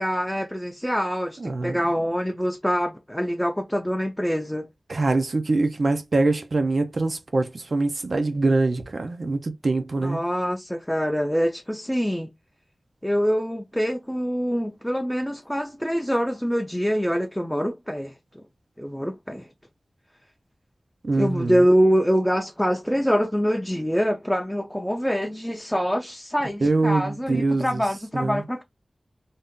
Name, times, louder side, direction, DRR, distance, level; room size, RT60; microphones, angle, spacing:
voice 1, 0.0-4.7 10.0-12.3 13.0-18.4 18.8-19.5 21.1-28.6, equal, 5° left, 0.4 m, -25 dB
voice 2, 1.4-1.8 4.9-10.2 21.0-21.6 26.6-27.8 28.1-28.4, right 3 dB, 60° right, 0.5 m, -24 dB
2.7 x 2.3 x 3.5 m
wide cardioid pair, 80°, 0 cm